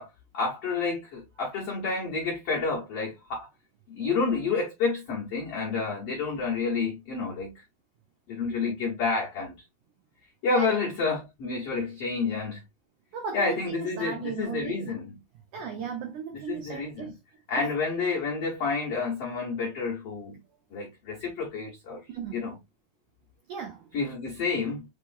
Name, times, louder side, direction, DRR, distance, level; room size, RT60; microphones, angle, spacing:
voice 1, 0.0-3.5 3.9-7.6 8.3-9.5 10.4-12.6 13.3-15.1 16.5-17.1 17.5-20.4 20.7-22.5 23.9-24.9, left 4 dB, 75° left, 1.3 m, -29 dB
voice 2, 13.1-14.8 15.5-17.1 17.6-17.7 22.1-22.4 23.5-23.9, right 6 dB, 80° right, 1.7 m, -36 dB
6.7 x 3.1 x 2.5 m
omnidirectional pair, 4.6 m